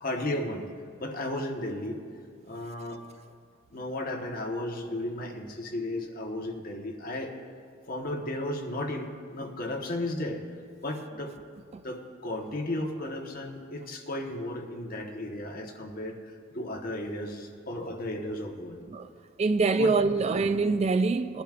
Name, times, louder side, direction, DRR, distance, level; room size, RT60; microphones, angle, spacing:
voice 1, 0.0-0.7 1.0-2.0 2.4-3.0 3.7-7.4 7.9-10.4 10.8-11.3 11.8-18.8 19.8-19.9, left 1 dB, 45° left, 1.2 m, -34 dB
voice 2, 19.4-21.4, right 3 dB, 30° right, 0.3 m, -24 dB
20.5 x 11.5 x 2.5 m
head